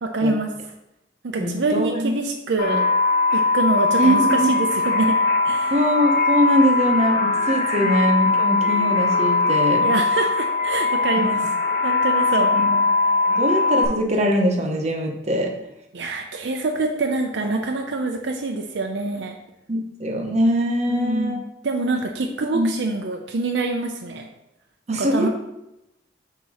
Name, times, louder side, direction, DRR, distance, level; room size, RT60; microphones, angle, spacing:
voice 1, 0.0-0.5 1.2-2.9 3.3-5.2 5.4-5.8 7.8-7.9 9.8-11.4 11.8-12.5 15.9-19.4 20.9-24.3 24.9-25.3, right 2 dB, 70° right, 3 dB, 0.6 m, -25 dB
voice 2, 1.4-2.1 2.7-2.8 4.0-4.6 5.7-9.9 11.2-11.3 12.5-12.8 13.1-15.5 19.7-21.4 22.5-22.7 24.9-25.3, equal, 35° right, 1 dB, 0.9 m, -22 dB
sound 1, 2.6-13.9, left 3 dB, 50° left, 1.0 m, -20 dB
7.1 x 2.9 x 4.9 m, 0.88 s
head